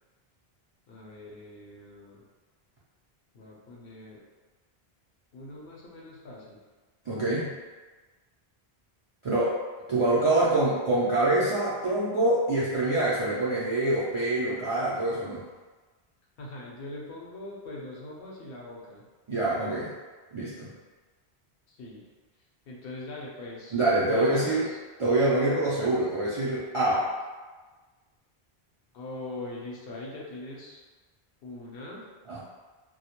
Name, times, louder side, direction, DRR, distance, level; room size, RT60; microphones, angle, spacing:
voice 1, 0.9-2.2 3.3-4.2 5.3-6.6 16.4-19.0 21.7-22.0 22.7-24.8 28.9-30.8 31.4-32.1, left 2 dB, 70° left, -3 dB, 0.8 m, -42 dB
voice 2, 7.1-7.5 9.2-9.6 9.9-15.4 19.3-19.9 20.3-20.7 23.7-24.7 25.0-27.1 32.3-32.4, right 2 dB, 55° right, -10 dB, 0.3 m, -25 dB
2.2 x 2.1 x 2.8 m, 1.3 s
omnidirectional pair, 1.0 m